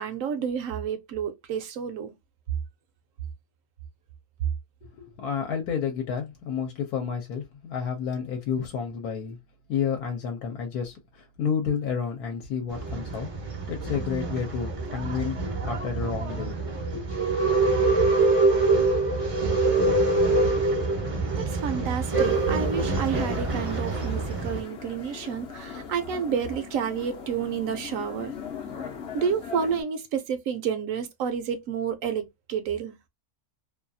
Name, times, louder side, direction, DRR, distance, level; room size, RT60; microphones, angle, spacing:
voice 1, 0.0-2.1 21.0-28.3 28.8-28.9 29.1-33.0, right 7 dB, 70° right, 0.9 m, -30 dB
voice 2, 4.8-9.4 9.7-13.3 13.7-16.5 16.9-17.1, left 7 dB, 80° left, 1.2 m, -30 dB
Male speech man speaking / Chatter / Rattle, 12.7-24.6, right 3 dB, 40° right, 0.5 m, -25 dB
sound 1, 22.1-29.8, left 6 dB, 60° left, 0.8 m, -40 dB
2.8 x 2.3 x 2.5 m
omnidirectional pair, 1.6 m